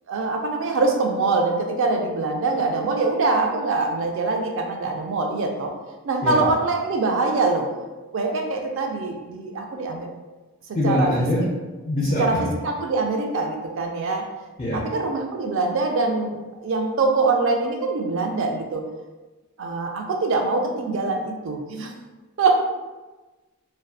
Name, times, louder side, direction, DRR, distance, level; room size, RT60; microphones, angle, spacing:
voice 1, 0.1-5.7 6.0-7.7 8.1-10.1 10.8-11.1 12.2-14.3 14.7-18.8 19.6-21.9 22.4-22.6, right 3 dB, 60° right, 3 dB, 0.4 m, -23 dB
voice 2, 10.7-11.4 11.8-12.5 14.6-14.8, left 1 dB, 25° left, -8 dB, 0.4 m, -23 dB
2.6 x 2.1 x 2.3 m, 1.2 s
head